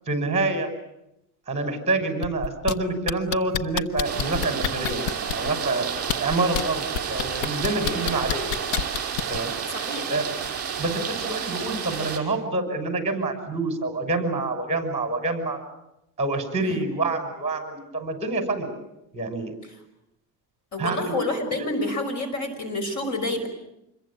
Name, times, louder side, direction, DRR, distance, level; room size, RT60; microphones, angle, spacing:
voice 1, 0.1-0.7 1.5-5.9 6.2-8.6 9.3-9.5 10.1-10.3 10.8-15.6 16.2-18.7 19.1-19.5 20.8-21.1 21.6-21.8, right 2 dB, 15° right, 6 dB, 6.0 m, -27 dB
sound 1, 2.2-2.7 3.1-5.5 6.0-6.6 6.9-9.4 10.4-10.5, left 9 dB, 85° left, 1.2 m, -27 dB
sound 2, 4.0-12.2, right 7 dB, 35° right, 5.3 m, -30 dB
voice 2, 7.7-8.0 9.7-10.1 16.6-16.8 20.7-23.5, left 2 dB, 40° left, 9 dB, 5.7 m, -29 dB
26.5 x 22.5 x 8.8 m, 0.84 s
cardioid pair, 140°, 43 cm